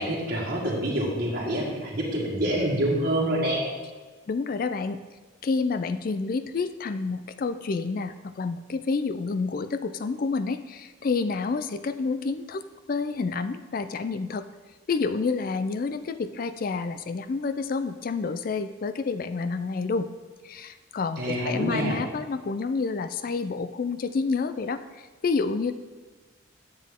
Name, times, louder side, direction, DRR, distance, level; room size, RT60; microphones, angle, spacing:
voice 1, 0.0-3.6 21.2-22.0, right 1 dB, 45° right, -4 dB, 1.6 m, -26 dB
voice 2, 4.3-5.0 5.4-12.6 12.9-14.4 14.9-20.1 20.4-25.7, left 4 dB, 45° left, 11 dB, 0.4 m, -29 dB
9.4 x 7.3 x 3.6 m, 1.4 s
head